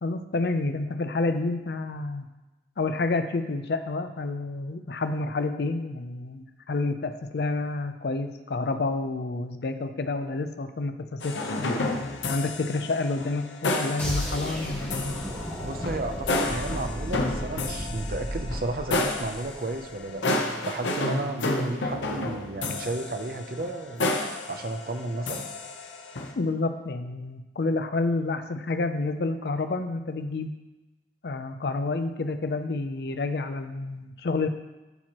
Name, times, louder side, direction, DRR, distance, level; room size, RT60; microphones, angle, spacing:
voice 1, 0.0-2.3 2.8-15.2 26.4-30.5 31.2-34.5, left 3 dB, 60° left, 9 dB, 0.5 m, -29 dB
sound 1, 11.2-26.3, left 2 dB, 85° left, 0.8 m, -31 dB
sound 2, 14.0-20.0, equal, 10° left, 2.0 m, -34 dB
voice 2, 15.6-24.1 24.5-25.5, right 2 dB, 50° right, 6 dB, 0.5 m, -33 dB
12.0 x 4.4 x 3.0 m, 1.1 s
head